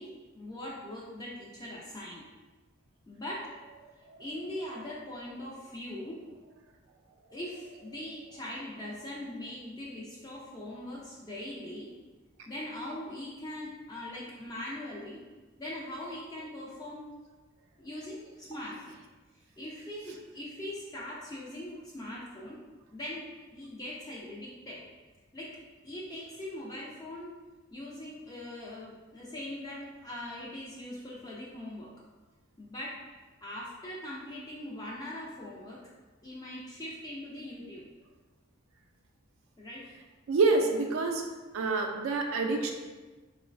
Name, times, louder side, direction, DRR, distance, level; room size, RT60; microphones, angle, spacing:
voice 1, 0.0-2.2 3.1-3.5 4.2-6.2 7.3-11.9 12.5-15.2 15.6-17.0 17.8-19.0 19.6-22.6 22.9-23.2 23.5-24.8 25.3-25.5 25.8-27.3 27.7-31.9 32.6-33.0 33.4-35.8 36.2-37.9 39.6-39.9, left 1 dB, 20° left, -5 dB, 0.3 m, -41 dB
voice 2, 40.3-41.2 41.5-42.7, right 3 dB, 80° right, 3 dB, 0.3 m, -27 dB
3.8 x 2.0 x 2.5 m, 1.3 s
head